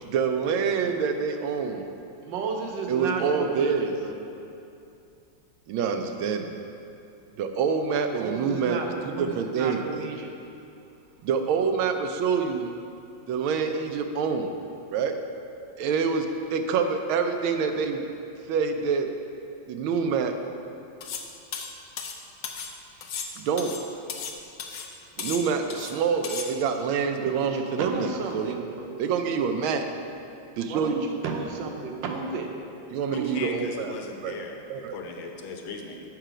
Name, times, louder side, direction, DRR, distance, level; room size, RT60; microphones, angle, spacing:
voice 1, 0.1-1.9 2.9-4.0 5.7-6.5 7.4-9.8 11.2-12.7 13.3-14.5 14.9-15.2 15.8-18.0 18.5-19.1 19.7-20.3 23.4-23.8 25.2-28.6 29.0-29.9 30.6-31.1 32.9-33.9 34.2-34.4 34.7-35.0, right 6 dB, 90° right, 6 dB, 1.4 m, -26 dB
voice 2, 2.2-4.3 8.1-10.3 27.2-29.0 30.7-32.5 33.1-33.4, right 4 dB, 75° right, 2 dB, 1.4 m, -33 dB
sound 1, 21.0-21.3 21.5-22.7 23.0-24.3 24.6-24.9 25.2-25.9 26.2-26.5, left 6 dB, 70° left, 0.8 m, -35 dB
voice 3, 33.1-34.6 34.9-36.0, left 4 dB, 85° left, 2 dB, 1.6 m, -38 dB
7.7 x 5.7 x 5.0 m, 2.6 s
omnidirectional pair, 2.2 m